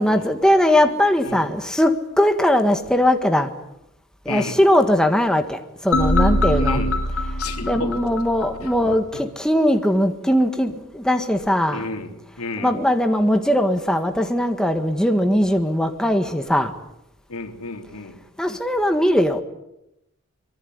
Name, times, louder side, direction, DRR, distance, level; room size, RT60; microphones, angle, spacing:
voice 1, 0.0-3.5 4.2-6.8 7.6-11.9 12.6-16.7 18.4-19.4, left 1 dB, 5° left, 6 dB, 1.6 m, -20 dB
voice 2, 4.3-4.6 6.6-7.0 7.4-8.0 8.6-9.0 11.7-12.7 17.3-18.2, left 3 dB, 80° left, 5 dB, 3.6 m, -32 dB
sound 1, 5.9-9.0, left 1 dB, 60° left, 7.6 m, -22 dB
24.5 x 23.0 x 9.6 m, 0.84 s
head